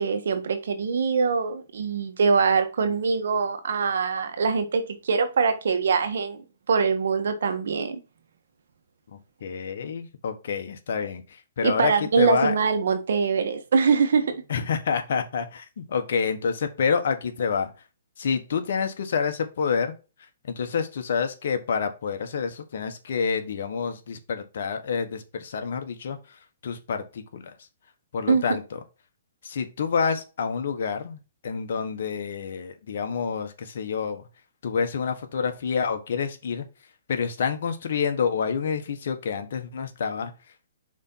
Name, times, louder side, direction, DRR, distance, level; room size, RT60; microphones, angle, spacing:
voice 1, 0.0-6.4 6.7-8.0 11.6-14.4 28.3-28.4, right 5 dB, 70° right, 1.4 m, -23 dB
voice 2, 9.4-11.2 11.6-12.5 14.5-17.7 18.2-19.9 20.5-26.2 26.6-27.5 28.1-28.8 29.4-34.2 34.6-36.6 37.1-40.3, left 6 dB, 65° left, 1.4 m, -28 dB
5.1 x 4.2 x 5.6 m
hypercardioid pair, 150°, 0 cm